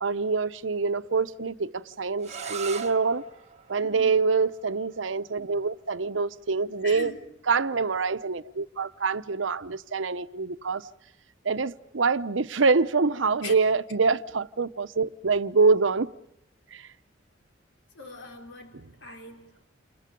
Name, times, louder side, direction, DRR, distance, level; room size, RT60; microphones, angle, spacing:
voice 1, 0.0-3.2 3.7-7.1 7.5-10.8 11.4-16.1 16.7-16.9, right 4 dB, 85° right, 0.8 m, -25 dB
sound 1, 2.2-7.9, right 7 dB, 35° right, 1.4 m, -43 dB
voice 2, 3.8-4.2 6.8-7.2 13.4-13.5 17.9-19.6, left 2 dB, 70° left, 4.3 m, -41 dB
29.5 x 28.5 x 5.3 m
head